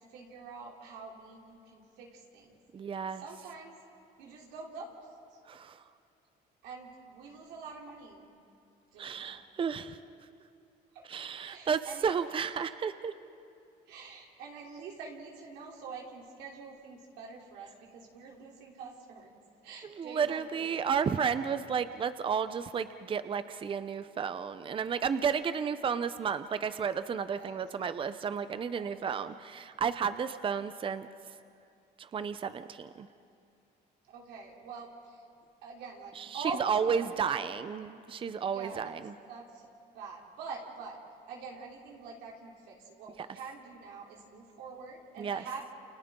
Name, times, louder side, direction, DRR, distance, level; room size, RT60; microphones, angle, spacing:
voice 1, 0.1-2.6 3.2-3.7 4.2-5.0 5.3-5.4 6.6-8.3 8.9-9.4 10.9-11.0 11.4-12.1 13.9-19.3 19.6-20.8 27.3-27.7 28.7-29.1 34.1-35.2 35.6-37.5 38.5-39.0 39.3-39.7 39.9-41.0 41.3-45.6, right 4 dB, 90° right, -2 dB, 3.3 m, -45 dB
voice 2, 2.7-3.2 5.5-5.8 9.0-10.0 11.1-13.1 19.9-31.1 32.0-33.1 36.2-39.1 45.2-45.4, right 6 dB, 30° right, 12 dB, 0.6 m, -32 dB
29.0 x 28.5 x 3.7 m, 2.4 s
cardioid pair, 110°, 17 cm